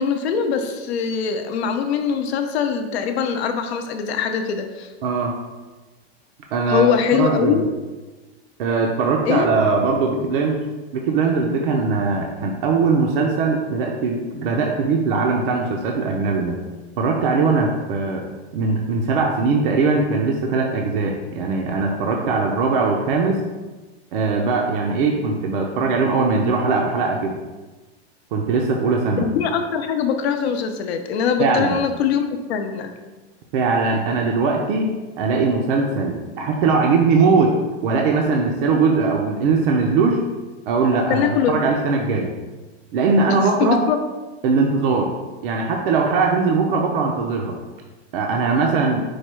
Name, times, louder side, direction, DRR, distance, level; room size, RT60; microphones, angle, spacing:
voice 1, 0.0-4.9 6.7-7.6 9.3-9.5 29.2-32.9 41.1-41.7 43.3-44.0, left 7 dB, 70° left, 6 dB, 0.6 m, -22 dB
voice 2, 5.0-5.3 6.5-7.6 8.6-10.7 10.9-16.6 17.0-18.2 18.5-23.4 24.1-27.3 28.3-29.3 31.4-31.8 33.5-37.6 37.8-40.2 40.7-42.3 42.9-43.9 44.4-45.1 45.4-47.5 48.1-49.0, right 4 dB, 55° right, 1 dB, 0.5 m, -20 dB
4.7 x 2.3 x 4.3 m, 1.2 s
supercardioid pair, 170°, 33 cm